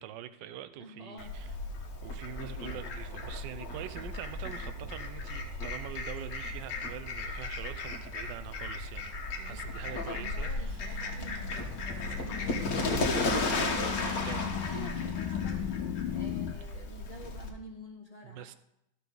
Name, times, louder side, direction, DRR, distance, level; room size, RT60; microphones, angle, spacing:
voice 1, 0.0-1.5 2.0-10.8 14.2-14.5 18.2-18.5, right 11 dB, 75° right, 1.2 m, -44 dB
voice 2, 0.7-1.3 9.3-15.8 16.1-18.5, left 1 dB, 25° left, 1.1 m, -49 dB
Fowl, 1.2-17.5, left 2 dB, 50° left, 1.5 m, -35 dB
sound 1, 9.9-16.5, left 10 dB, 80° left, 1.4 m, -37 dB
14.0 x 5.8 x 3.9 m
omnidirectional pair, 2.1 m